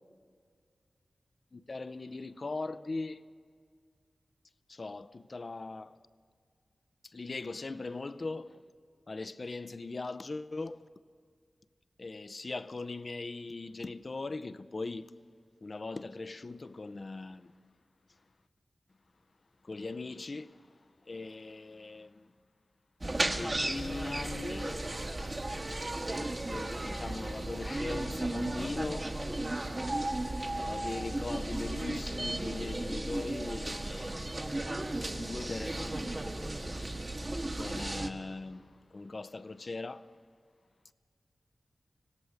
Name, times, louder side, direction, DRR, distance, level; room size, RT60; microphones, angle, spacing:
voice 1, 1.5-3.2 4.7-6.0 7.0-8.6 9.1-10.8 12.0-15.1 15.6-17.5 19.6-22.3 23.2-24.8 26.5-29.1 30.6-34.7 35.1-36.2 36.8-37.0 37.6-40.1, left 3 dB, 50° left, 0.6 m, -40 dB
sound 1, 23.0-38.1, right 1 dB, 35° right, 1.5 m, -35 dB
25.5 x 17.0 x 6.5 m
cardioid pair, 60°, 0 cm